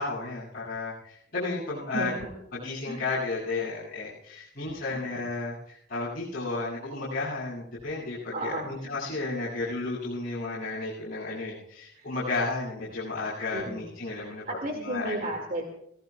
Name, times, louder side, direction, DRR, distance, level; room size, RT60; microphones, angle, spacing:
voice 1, 0.0-2.1 2.5-14.4 14.8-15.3, left 3 dB, 45° left, -9 dB, 7.4 m, -33 dB
voice 2, 1.9-2.3 2.9-3.0 4.9-5.0 8.3-8.9 11.9-12.1 13.5-15.6, right 1 dB, 45° right, 1 dB, 2.3 m, -34 dB
29.5 x 18.0 x 2.4 m, 0.72 s
head